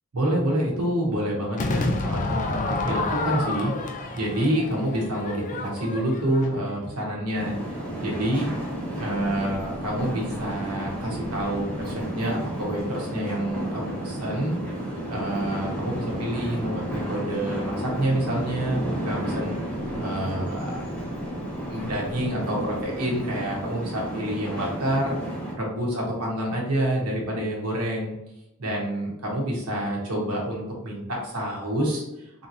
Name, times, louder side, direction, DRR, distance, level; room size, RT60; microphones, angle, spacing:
voice 1, 0.1-7.6 8.0-8.5 9.0-14.5 15.1-19.6 20.0-20.8 21.5-25.2 25.5-28.1 28.6-32.5, right 1 dB, 85° right, -2 dB, 1.1 m, -28 dB
Crowd / Fireworks, 1.6-6.8, left 2 dB, 35° left, 0.4 m, -29 dB
sound 1, 7.3-25.5, right 1 dB, 5° left, 0.8 m, -32 dB
sound 2, 7.7-24.0, right 1 dB, 25° right, 0.5 m, -43 dB
3.5 x 2.9 x 2.7 m, 0.92 s
head